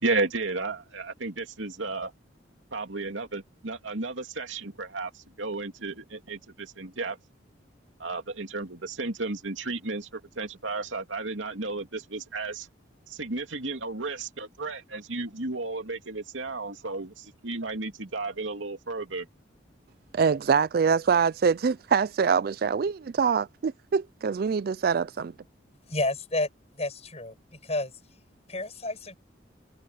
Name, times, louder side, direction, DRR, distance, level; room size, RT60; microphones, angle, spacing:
voice 1, 0.0-2.1 2.7-7.2 8.0-12.7 13.1-19.3, right 3 dB, 85° right, 2.7 m, -33 dB
voice 2, 20.1-25.3, right 6 dB, 50° right, 0.3 m, -24 dB
voice 3, 25.9-26.5 26.7-27.9 28.5-29.2, left 2 dB, 35° left, 7.1 m, -30 dB
head